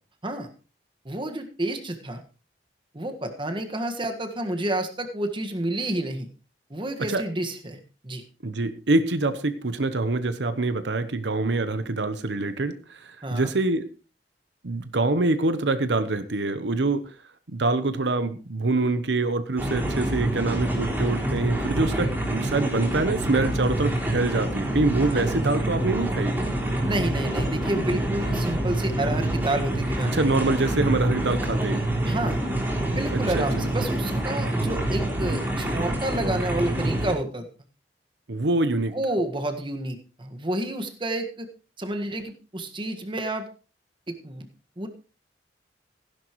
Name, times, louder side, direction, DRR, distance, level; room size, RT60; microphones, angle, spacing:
voice 1, 1.0-2.2 2.9-6.3 6.7-8.2 13.2-13.5 25.1-25.2 26.8-30.1 32.0-32.4 32.9-37.5 38.9-41.5 41.8-43.5 44.1-44.5 44.8-44.9, right 1 dB, 30° right, 5 dB, 1.6 m, -30 dB
voice 2, 8.4-12.8 13.0-13.8 14.6-17.0 17.5-26.4 30.1-31.8 33.1-33.4 38.3-39.0, right 2 dB, 75° right, 11 dB, 1.0 m, -25 dB
sound 1, 19.6-37.1, right 1 dB, 10° right, 3.7 m, -26 dB
16.0 x 11.0 x 3.1 m, 0.34 s
head